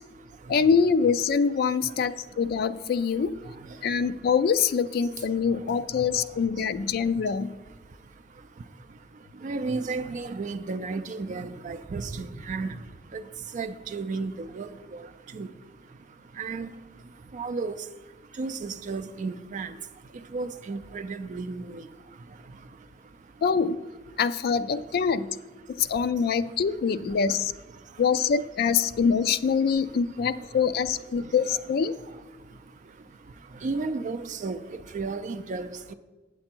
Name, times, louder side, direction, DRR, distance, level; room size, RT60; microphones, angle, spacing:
voice 1, 0.5-3.3 3.8-7.5 23.4-23.8 24.2-25.4 25.8-27.5 28.0-31.9, left 6 dB, 55° left, 12 dB, 0.3 m, -24 dB
voice 2, 9.4-12.7 13.1-13.2 13.5-15.0 15.3-15.5 16.4-16.7 17.3-17.8 18.4-19.7 20.3-21.8 33.6-34.6 34.9-35.9, right 3 dB, 45° right, 10 dB, 0.4 m, -33 dB
8.4 x 7.7 x 4.4 m, 1.3 s
head